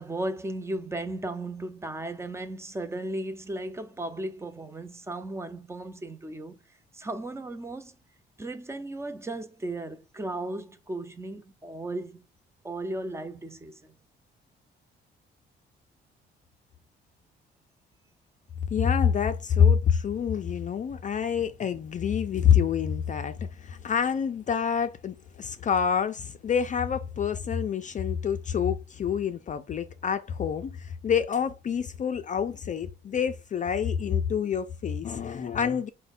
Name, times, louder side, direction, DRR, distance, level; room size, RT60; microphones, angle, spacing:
voice 1, 0.0-6.6 6.9-8.0 8.4-12.2 12.6-13.9, right 2 dB, 15° right, 0.6 m, -35 dB
voice 2, 18.7-35.9, left 7 dB, 40° left, 0.4 m, -27 dB
4.4 x 2.2 x 4.1 m
cardioid pair, 90°, 20 cm